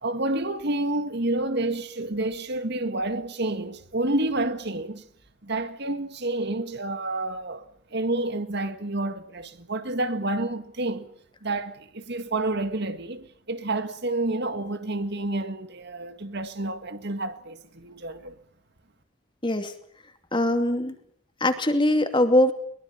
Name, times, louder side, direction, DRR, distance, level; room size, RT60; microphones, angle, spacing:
voice 1, 0.0-5.1 5.4-7.7 7.9-11.1 11.4-18.4, right 2 dB, 55° right, 2.0 m, -29 dB
voice 2, 19.4-19.7 20.3-21.0 21.4-22.5, left 1 dB, 25° left, 2.6 m, -21 dB
23.0 x 22.5 x 7.4 m
head